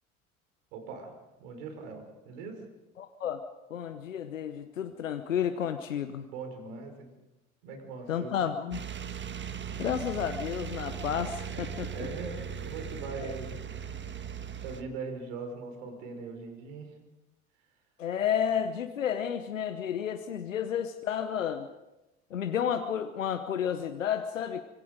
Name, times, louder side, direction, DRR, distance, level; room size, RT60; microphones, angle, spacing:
voice 1, 0.7-1.1 1.4-2.6 6.3-7.1 7.6-8.5 11.8-13.6 14.6-17.0, right 4 dB, 70° right, 6 dB, 5.0 m, -41 dB
voice 2, 3.0-3.4 3.7-6.3 8.1-8.8 9.8-11.9 18.0-21.7 22.3-24.6, left 8 dB, 85° left, 9 dB, 1.0 m, -31 dB
sound 1, 8.7-14.8, right 7 dB, 30° right, 1.5 m, -38 dB
26.0 x 23.0 x 5.2 m, 1.0 s
figure-of-eight pair, 60°, 38 cm